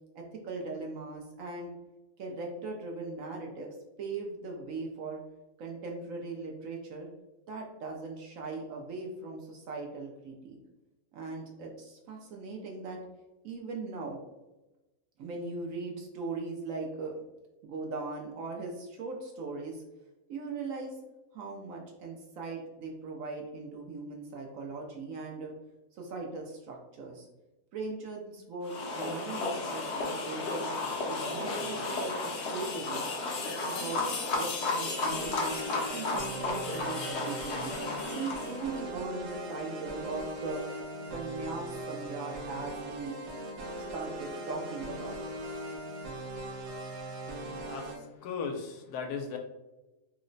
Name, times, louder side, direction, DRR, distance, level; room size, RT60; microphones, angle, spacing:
voice 1, 0.2-1.7 2.2-3.7 4.0-5.2 5.6-7.1 7.5-10.6 11.1-13.0 13.4-14.2 15.2-17.1 17.6-19.8 20.3-20.9 21.3-25.5 25.9-27.3 27.7-30.7 31.1-33.0 33.6-35.6 35.9-37.8 38.2-40.6 41.1-43.1 43.8-45.2, right 3 dB, 65° right, 0 dB, 0.9 m, -39 dB
sound 1, 28.6-38.7, left 3 dB, 60° left, 0.7 m, -33 dB
sound 2, 35.1-48.0, right 1 dB, 90° right, 1.2 m, -40 dB
voice 2, 47.7-49.4, left 5 dB, 80° left, 3 dB, 1.1 m, -37 dB
3.0 x 2.1 x 3.8 m, 1.0 s
omnidirectional pair, 1.7 m